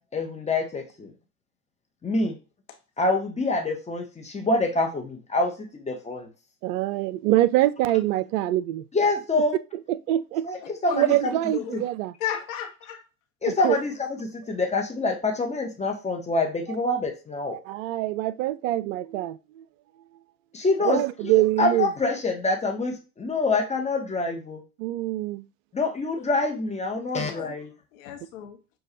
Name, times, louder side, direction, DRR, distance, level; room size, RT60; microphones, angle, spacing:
voice 1, 0.1-1.1 2.0-2.4 3.0-6.3 8.9-9.5 10.5-11.3 11.7-11.8 13.4-13.9 14.2-17.6 20.5-24.6 25.7-27.7, left 3 dB, 15° left, 0.8 m, -26 dB
voice 2, 6.6-8.8 9.9-10.5 10.9-12.1 13.5-13.8 17.5-19.6 20.8-21.9 24.8-25.4, right 15 dB, 55° right, 0.5 m, -24 dB
voice 3, 12.2-13.0 13.7-13.8 26.2-26.3 27.2-27.5 27.9-28.6, left 10 dB, 60° left, 0.9 m, -34 dB
6.3 x 2.3 x 2.7 m
hypercardioid pair, 85°, 46 cm